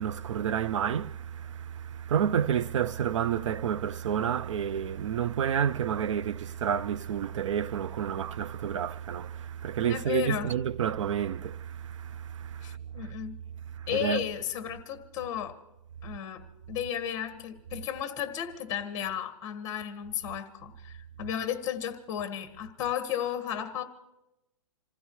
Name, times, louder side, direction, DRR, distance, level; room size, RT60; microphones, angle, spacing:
voice 1, 0.0-13.1 13.8-14.3, right 8 dB, 60° right, 0.4 m, -30 dB
voice 2, 9.9-10.5 12.6-13.3 13.9-15.5 16.0-16.4 16.7-23.8, left 10 dB, 20° left, 1.5 m, -34 dB
28.0 x 15.5 x 3.1 m
hypercardioid pair, 165°, 18 cm